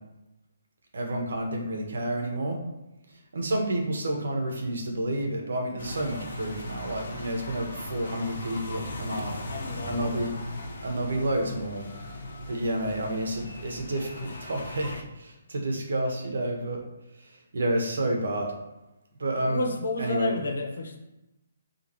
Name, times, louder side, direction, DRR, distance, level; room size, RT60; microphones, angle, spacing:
voice 1, 0.9-2.6 3.3-9.3 9.9-10.3 10.8-11.9 12.5-16.8 17.3-18.5 19.2-19.7 20.0-20.3, right 1 dB, 70° right, 2 dB, 1.5 m, -30 dB
sound 1, 5.8-15.0, left 2 dB, 60° left, 1.3 m, -38 dB
voice 2, 9.5-10.1 19.5-21.0, left 2 dB, 90° left, 3 dB, 1.4 m, -31 dB
9.4 x 3.5 x 3.1 m, 0.98 s
hypercardioid pair, 180°, 0 cm